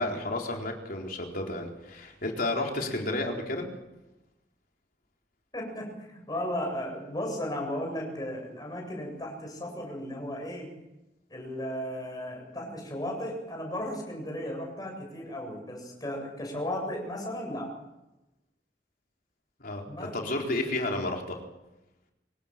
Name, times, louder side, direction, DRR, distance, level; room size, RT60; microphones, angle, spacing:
voice 1, 0.0-3.7 19.6-21.4, left 2 dB, 55° left, 1 dB, 4.1 m, -31 dB
voice 2, 5.5-10.7 11.3-17.7 19.9-20.2, left 1 dB, 25° left, 0 dB, 7.8 m, -35 dB
25.0 x 18.0 x 7.5 m, 0.95 s
head